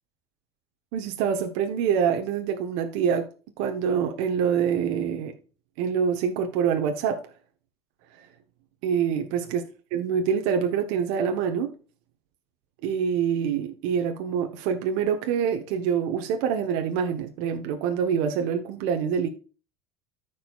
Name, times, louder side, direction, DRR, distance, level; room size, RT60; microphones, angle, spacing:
voice 1, 0.9-3.3 3.6-5.3 5.8-7.3 8.1-8.3 8.8-9.6 9.9-11.7 12.8-19.3, right 7 dB, 65° right, 1.2 m, -25 dB
14.5 x 5.1 x 2.4 m
hypercardioid pair, 80°, 13 cm